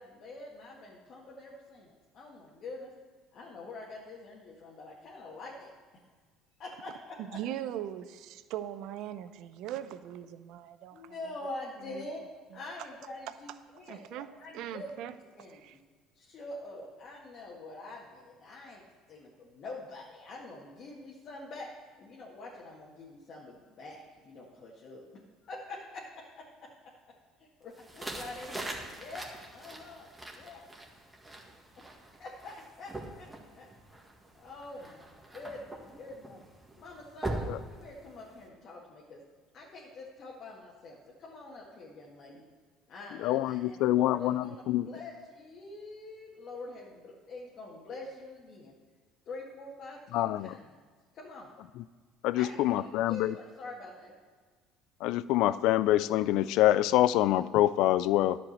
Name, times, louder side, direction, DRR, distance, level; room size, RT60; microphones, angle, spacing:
voice 1, 0.0-2.9 3.3-5.7 6.6-7.4 10.9-12.2 12.5-15.8 16.1-21.7 22.0-26.7 27.4-28.7 29.0-29.3 29.5-30.0 30.4-30.6 32.2-33.7 34.3-36.5 36.8-39.2 39.5-42.4 42.9-48.7 49.3-50.8 51.1-51.5 52.3-54.2, left 2 dB, 55° left, -4 dB, 1.8 m, -45 dB
voice 2, 7.3-11.2 11.8-12.0 12.5-12.6 13.9-14.3 14.5-15.1 15.5-15.8, right 11 dB, 70° right, 12 dB, 0.6 m, -40 dB
sound 1, 27.7-38.5, right 1 dB, 15° right, 1.8 m, -42 dB
voice 3, 43.2-44.9 50.1-50.6 52.2-53.3 55.0-58.4, left 14 dB, 75° left, 17 dB, 0.3 m, -26 dB
10.5 x 5.2 x 8.0 m, 1.5 s
supercardioid pair, 85°, 0 cm